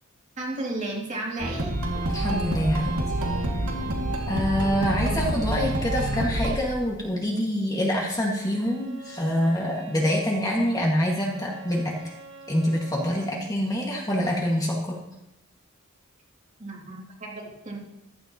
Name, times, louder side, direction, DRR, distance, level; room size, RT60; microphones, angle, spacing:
voice 1, 0.4-1.8 16.6-17.8, right 2 dB, 35° right, -3 dB, 2.5 m, -33 dB
sound 1, 1.4-6.6, right 1 dB, 80° right, 2.1 m, -27 dB
voice 2, 2.1-2.9 4.3-11.9 12.5-14.9, equal, 15° left, -2 dB, 1.8 m, -25 dB
Bowed string instrument, 8.1-13.5, right 3 dB, 60° right, 1.2 m, -47 dB
14.5 x 12.5 x 2.9 m, 0.86 s
head